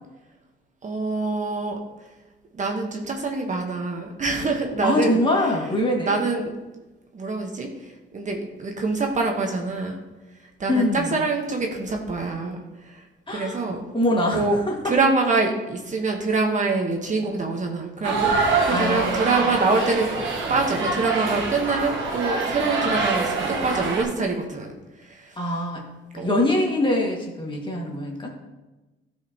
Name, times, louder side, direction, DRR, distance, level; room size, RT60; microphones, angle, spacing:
voice 1, 0.8-1.8 2.5-5.2 6.1-6.5 7.1-7.7 8.1-10.0 10.6-12.6 13.3-13.8 14.3-14.6 14.8-18.3 18.6-20.1 20.5-24.7 26.1-26.4, right 3 dB, 40° right, 2 dB, 1.2 m, -25 dB
voice 2, 4.8-6.1 10.7-11.2 13.3-13.6 13.9-14.9 18.7-19.5 25.4-25.8 26.1-28.3, left 1 dB, 25° left, -1 dB, 1.9 m, -24 dB
sound 1, 18.0-24.0, right 4 dB, 75° right, 1.4 m, -25 dB
13.0 x 5.0 x 2.9 m, 1.1 s
cardioid pair, 90°, 20 cm